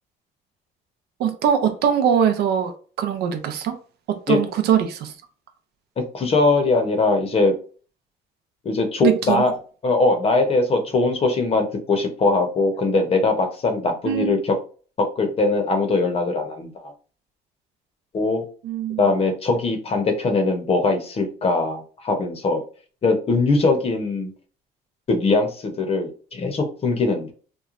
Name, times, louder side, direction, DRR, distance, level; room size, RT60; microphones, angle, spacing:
voice 1, 1.2-2.7 3.0-3.8 4.1-5.1 9.0-9.4 14.0-14.4 18.6-19.0, right 8 dB, 70° right, 0.5 m, -21 dB
voice 2, 6.1-7.5 8.6-9.5 9.8-14.6 15.0-16.9 18.1-18.4 19.0-22.6 23.0-24.3 25.1-27.3, left 3 dB, 35° left, 0.7 m, -21 dB
3.0 x 2.1 x 2.4 m
cardioid pair, 110°, 17 cm